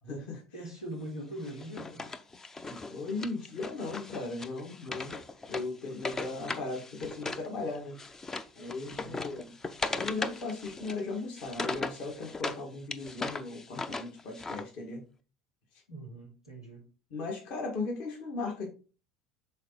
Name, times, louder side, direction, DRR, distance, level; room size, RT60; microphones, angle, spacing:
voice 1, 0.0-0.4 2.6-5.2 5.5-8.0 8.6-9.5 10.0-15.0 17.1-18.7, left 3 dB, 50° left, 1.9 m, -37 dB
voice 2, 0.5-2.1 8.9-9.2 15.9-16.9, right 1 dB, 85° left, 2.6 m, -42 dB
Wood, 1.4-7.5 7.7-12.6 12.9-14.6, left 3 dB, 20° left, 0.6 m, -38 dB
6.5 x 4.2 x 4.0 m
figure-of-eight pair, 65°, 3 cm